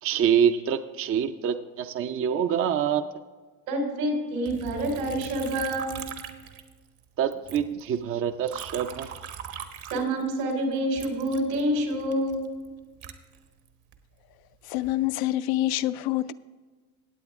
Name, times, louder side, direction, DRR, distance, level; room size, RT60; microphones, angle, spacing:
voice 1, 0.0-3.0 7.2-9.1, right 8 dB, 35° right, 0.5 m, -26 dB
voice 2, 3.7-6.0 9.9-12.4, right 1 dB, 80° right, 3.4 m, -27 dB
Liquid, 4.5-7.0 7.3-10.5 11.0-14.0 14.5-15.1, right 8 dB, 60° right, 1.2 m, -41 dB
voice 3, 14.6-16.3, left 15 dB, 60° left, 0.5 m, -26 dB
17.5 x 8.0 x 3.5 m
supercardioid pair, 95°, 42 cm